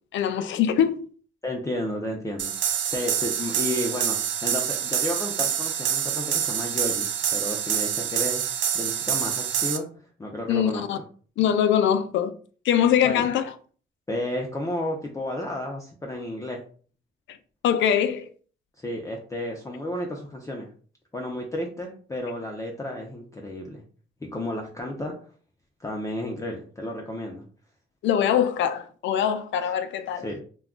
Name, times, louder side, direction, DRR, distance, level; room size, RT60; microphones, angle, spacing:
voice 1, 0.1-1.0 10.5-11.0 11.4-12.3 12.6-13.4 17.6-18.3 28.0-30.3, left 9 dB, 70° left, 0.4 m, -23 dB
voice 2, 1.4-2.6 2.9-8.4 8.7-9.9 10.2-11.0 13.0-13.2 14.1-16.6 18.8-20.7 21.1-23.8 24.3-25.1 25.8-27.4 30.2-30.4, left 1 dB, 15° left, 0.5 m, -32 dB
sound 1, 2.4-9.8, right 9 dB, 65° right, 0.5 m, -26 dB
2.2 x 2.2 x 3.6 m
cardioid pair, 90°, 20 cm